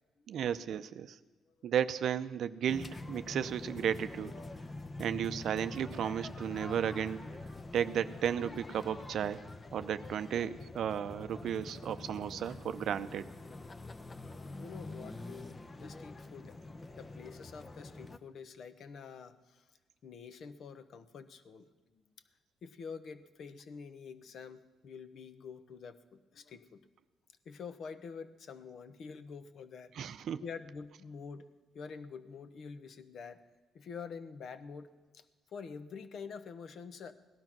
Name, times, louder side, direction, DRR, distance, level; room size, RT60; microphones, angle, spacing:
voice 1, 0.3-1.2 1.6-4.3 5.0-7.3 7.7-9.4 9.7-13.3 29.9-30.5, right 9 dB, 70° right, 11 dB, 0.5 m, -34 dB
sound 1, 2.7-18.2, left 2 dB, 25° left, 0.8 m, -46 dB
voice 2, 14.6-16.6 17.0-19.6 20.0-21.7 22.6-26.9 27.4-30.1 30.4-31.5 31.7-33.4 33.7-37.1, left 5 dB, 60° left, 12 dB, 1.0 m, -47 dB
17.5 x 12.0 x 6.0 m, 1.2 s
cardioid pair, 90°, 0 cm